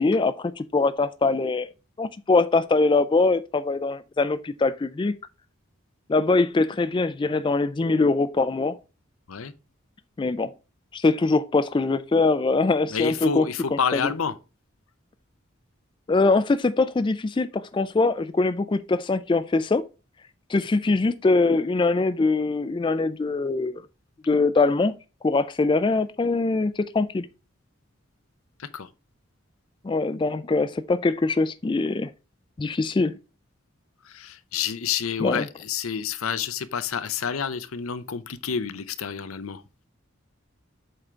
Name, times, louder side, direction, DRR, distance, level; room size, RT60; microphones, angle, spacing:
voice 1, 0.0-1.7 2.0-5.2 6.1-8.8 10.2-10.5 10.9-14.1 16.1-19.8 20.5-23.8 24.2-24.9 25.2-27.3 29.8-32.1 32.6-33.1 35.2-35.5, left 3 dB, 25° left, 0.3 m, -23 dB
voice 2, 12.9-14.4 28.6-28.9 34.1-39.6, left 6 dB, 85° left, 0.7 m, -29 dB
7.9 x 3.8 x 4.4 m
head